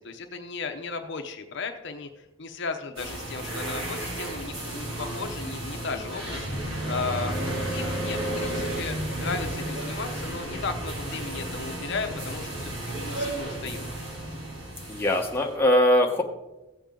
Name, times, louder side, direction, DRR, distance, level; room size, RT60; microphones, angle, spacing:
voice 1, 0.0-6.5 6.9-7.4 7.7-13.9, left 4 dB, 55° left, 6 dB, 0.8 m, -35 dB
sound 1, 3.0-15.5, right 1 dB, 65° right, 2.8 m, -33 dB
voice 2, 14.9-16.2, left 1 dB, 10° left, 0 dB, 1.0 m, -22 dB
16.0 x 7.2 x 3.8 m, 1.0 s
head